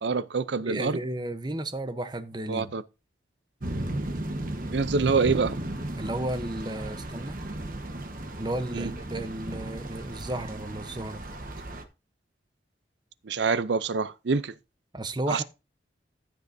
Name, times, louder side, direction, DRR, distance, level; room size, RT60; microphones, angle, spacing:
voice 1, 0.0-1.0 2.5-2.8 4.7-5.6 8.7-8.9 13.2-14.5 15.3-15.4, right 4 dB, 75° right, 0.6 m, -26 dB
voice 2, 0.6-2.7 6.0-7.4 8.4-11.2 14.9-15.4, right 1 dB, 25° right, 0.8 m, -33 dB
sound 1, 3.6-11.8, right 1 dB, 50° right, 1.2 m, -35 dB
14.5 x 6.7 x 2.7 m
head